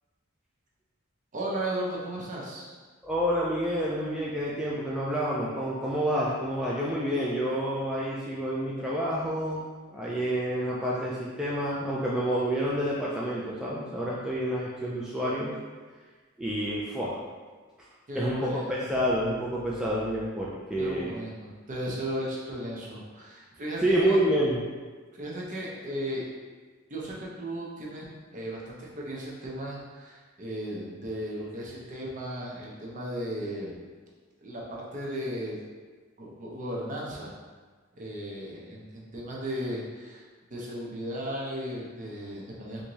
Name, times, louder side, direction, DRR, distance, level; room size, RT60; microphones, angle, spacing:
voice 1, 1.3-2.7 18.1-18.7 20.8-24.2 25.1-26.2 26.9-33.7 34.4-35.6 36.2-37.3 38.0-40.2 40.5-42.8, right 1 dB, 40° right, -4 dB, 0.7 m, -35 dB
voice 2, 3.0-15.5 16.4-17.2 18.1-21.2 23.8-24.6, equal, 5° right, -7 dB, 0.3 m, -28 dB
3.4 x 2.6 x 3.0 m, 1.4 s
head